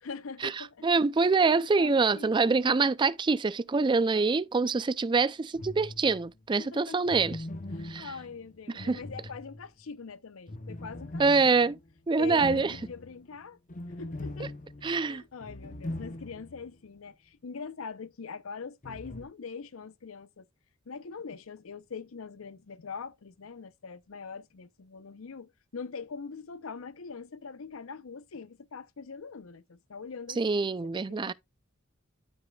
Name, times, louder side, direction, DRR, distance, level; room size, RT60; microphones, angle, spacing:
voice 1, 0.0-0.9 1.6-2.8 6.6-7.0 7.7-11.7 12.2-13.6 14.0-14.5 15.0-20.5 20.9-31.3, left 5 dB, 80° left, 0.7 m, -43 dB
voice 2, 0.8-7.4 7.8-8.1 8.8-9.0 11.2-11.8 12.1-12.7 14.4-14.5 14.8-15.2 30.4-31.3, right 4 dB, 25° right, 0.4 m, -25 dB
sound 1, 5.5-6.3 7.1-9.8 10.5-16.7 17.0-17.1 18.8-19.2, left 1 dB, 40° left, 0.8 m, -41 dB
12.5 x 5.0 x 2.3 m
head